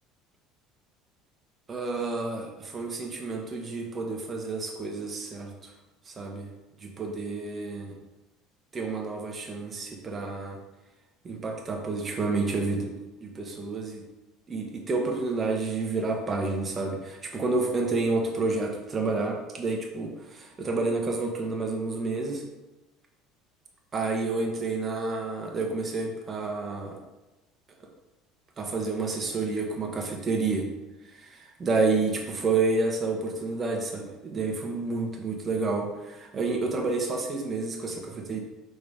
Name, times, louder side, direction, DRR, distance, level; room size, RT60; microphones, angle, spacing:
voice 1, 1.7-5.7 6.0-6.5 6.8-7.9 8.7-10.6 11.2-12.9 13.2-14.0 14.5-22.4 23.9-27.0 28.6-30.7 31.0-38.4, right 3 dB, 30° right, 1 dB, 1.3 m, -29 dB
5.1 x 3.9 x 5.1 m, 1.0 s
supercardioid pair, 115°, 0 cm